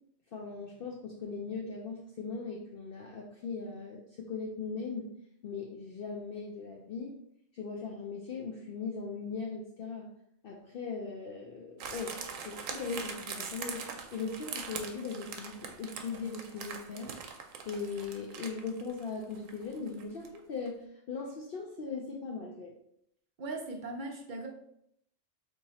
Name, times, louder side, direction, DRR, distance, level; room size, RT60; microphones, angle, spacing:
voice 1, 0.3-5.1 5.4-7.1 7.5-10.1 10.4-12.2 12.4-17.2 17.6-22.7, left 4 dB, 60° left, -1 dB, 0.6 m, -39 dB
sound 1, 11.8-20.4 20.7-20.8, right 6 dB, 85° right, 1.0 m, -42 dB
voice 2, 23.4-24.5, right 2 dB, 55° right, 2 dB, 0.6 m, -39 dB
2.9 x 2.7 x 4.1 m, 0.73 s
omnidirectional pair, 1.3 m